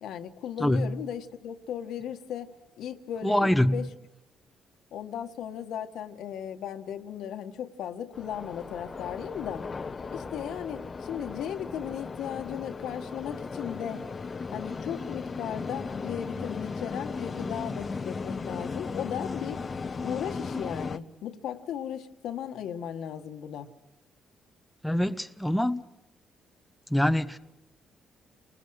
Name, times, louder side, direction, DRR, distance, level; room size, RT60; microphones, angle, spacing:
voice 1, 0.0-2.5 2.8-3.9 4.9-9.7 10.1-14.0 14.5-19.6 20.0-23.7, left 9 dB, 80° left, 1.8 m, -36 dB
voice 2, 0.6-1.0 3.2-3.9 24.8-25.8 26.9-27.4, left 1 dB, 5° left, 1.1 m, -25 dB
sound 1, 8.1-21.0, left 4 dB, 35° left, 1.1 m, -36 dB
30.0 x 20.5 x 6.5 m
cardioid pair, 90°, 0 cm